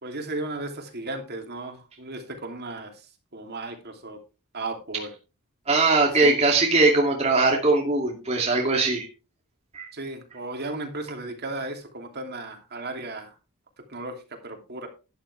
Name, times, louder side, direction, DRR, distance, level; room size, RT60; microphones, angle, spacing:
voice 1, 0.0-4.2 4.5-5.1 6.1-6.4 9.9-13.3 13.9-14.9, right 2 dB, 45° right, 4 dB, 2.8 m, -35 dB
voice 2, 5.7-9.1 9.7-9.9, right 3 dB, 30° right, 0 dB, 2.4 m, -21 dB
12.0 x 11.5 x 3.3 m, 0.31 s
head